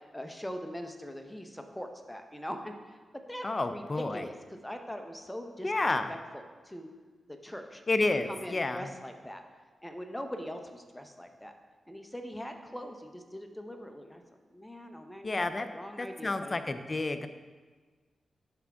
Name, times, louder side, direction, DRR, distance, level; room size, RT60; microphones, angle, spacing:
voice 1, 0.1-2.7 3.3-6.9 7.3-7.8 8.2-9.4 9.8-11.5 11.9-14.2 14.5-16.6, equal, 10° left, 5 dB, 0.9 m, -42 dB
voice 2, 3.4-4.2 5.6-6.1 7.9-8.9 15.2-15.7 16.0-17.3, left 2 dB, 40° left, 9 dB, 0.5 m, -30 dB
10.5 x 3.6 x 3.6 m, 1.4 s
cardioid pair, 50°, 0 cm